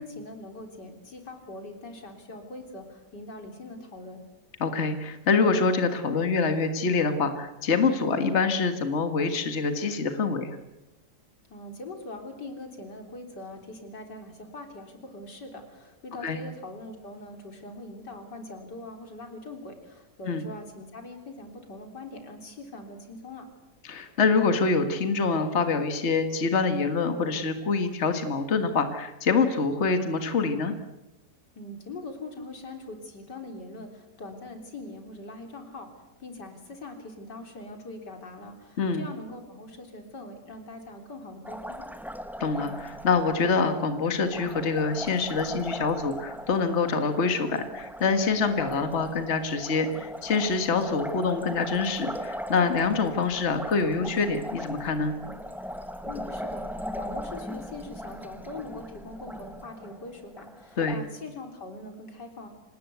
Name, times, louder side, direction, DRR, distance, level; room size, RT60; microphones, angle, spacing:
voice 1, 0.0-4.2 11.5-23.4 31.5-41.8 56.0-62.5, left 2 dB, 85° left, 4 dB, 4.2 m, -42 dB
voice 2, 4.6-10.6 16.2-16.4 20.3-20.4 23.8-30.7 38.8-39.1 42.4-55.1 60.8-61.0, left 4 dB, 45° left, 7 dB, 1.9 m, -25 dB
Liquid, 41.4-61.0, equal, ahead, 0.5 m, -39 dB
26.0 x 19.5 x 8.2 m, 1.0 s
omnidirectional pair, 1.8 m